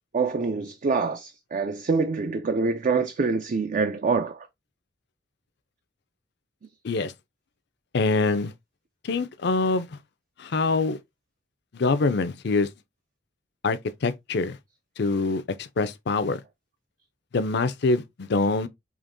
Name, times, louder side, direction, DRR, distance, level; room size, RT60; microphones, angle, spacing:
voice 1, 0.1-4.5, right 4 dB, 45° right, 0.4 m, -25 dB
voice 2, 7.9-8.5 9.0-10.0 10.4-11.0 11.7-12.7 13.6-14.6 15.0-16.4 17.3-18.7, left 3 dB, 60° left, 0.5 m, -25 dB
5.0 x 3.0 x 2.5 m
head